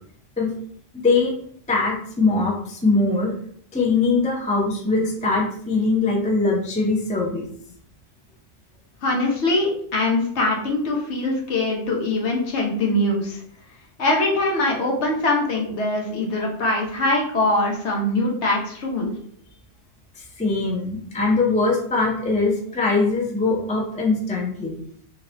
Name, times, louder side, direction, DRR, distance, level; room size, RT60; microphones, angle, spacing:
voice 1, 1.0-1.3 1.7-3.3 3.7-7.4 20.1-24.8, left 3 dB, 10° left, -1 dB, 0.3 m, -22 dB
voice 2, 9.0-13.4 14.0-19.1, left 2 dB, 70° left, -1 dB, 1.1 m, -22 dB
3.1 x 2.7 x 2.9 m, 0.63 s
omnidirectional pair, 1.2 m